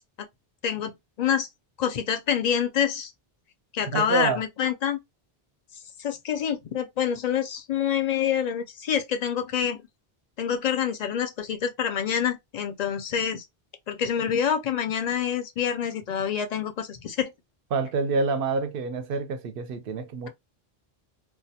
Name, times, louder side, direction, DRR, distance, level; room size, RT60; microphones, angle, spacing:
voice 1, 1.2-1.5 1.8-3.1 3.7-5.0 6.0-9.8 10.4-13.4 13.9-17.3, left 8 dB, 55° left, 0.5 m, -26 dB
voice 2, 3.9-4.4 17.7-20.3, right 4 dB, 70° right, 0.7 m, -27 dB
2.3 x 2.2 x 2.7 m
omnidirectional pair, 1.0 m